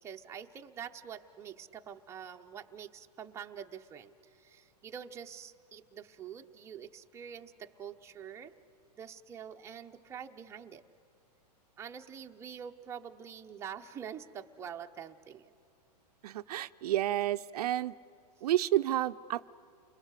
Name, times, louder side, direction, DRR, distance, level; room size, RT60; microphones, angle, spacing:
voice 1, 0.0-8.5 9.0-10.8 11.8-15.5, right 8 dB, 10° right, 3 dB, 0.8 m, -46 dB
voice 2, 16.2-17.9 18.4-19.4, right 13 dB, 65° right, 12 dB, 0.6 m, -30 dB
29.5 x 21.5 x 8.2 m, 2.5 s
hypercardioid pair, 150°, 21 cm